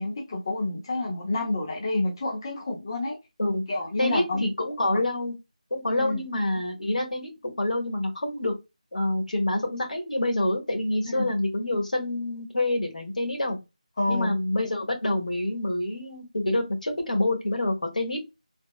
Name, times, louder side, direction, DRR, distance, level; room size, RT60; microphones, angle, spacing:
voice 1, 0.0-3.2 3.7-4.5 5.9-6.2 11.1-11.3 14.0-14.4, left 2 dB, 35° left, 0.8 m, -28 dB
voice 2, 4.0-5.3 5.7-8.5 8.9-13.6 14.1-18.3, left 1 dB, 80° left, 1.4 m, -27 dB
3.4 x 2.1 x 2.4 m
figure-of-eight pair, 170°, 4 cm